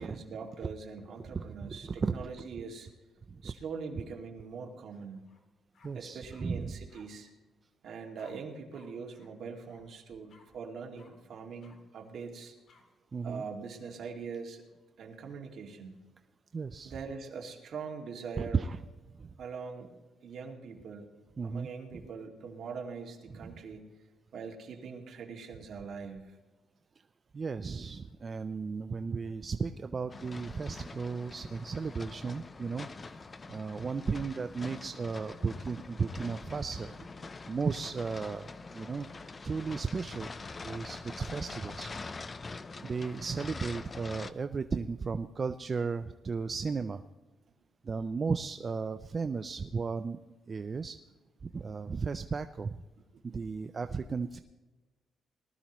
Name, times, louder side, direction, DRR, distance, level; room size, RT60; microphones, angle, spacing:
voice 1, 0.0-2.9 3.4-5.2 5.9-7.3 7.8-12.5 13.2-14.6 15.0-15.9 16.8-18.6 19.4-19.9 20.2-21.1 21.4-23.9 24.3-26.4, right 5 dB, 60° right, 1 dB, 2.1 m, -42 dB
voice 2, 1.7-2.1 3.4-3.5 5.8-6.7 13.1-13.4 16.5-16.9 18.4-18.8 19.2-19.3 21.4-21.7 27.3-33.1 33.5-36.9 37.5-39.1 39.4-40.3 40.6-41.9 42.8-47.0 47.8-50.2 50.5-51.0 51.4-52.8 53.3-54.4, right 5 dB, 30° right, 9 dB, 0.4 m, -35 dB
sound 1, 5.3-5.4 5.7-6.5 6.9-7.0 8.2-8.3 8.7-8.9 9.1-9.3 9.7-9.8 10.3-10.5 11.0-11.1 11.6-11.8 12.7-12.8, left 4 dB, 55° left, 2.2 m, -61 dB
snow plow passby scrape street Montreal Canada, 30.1-44.3, left 3 dB, 25° left, 0.5 m, -44 dB
19.5 x 13.0 x 3.0 m, 1.2 s
cardioid pair, 130°, 0 cm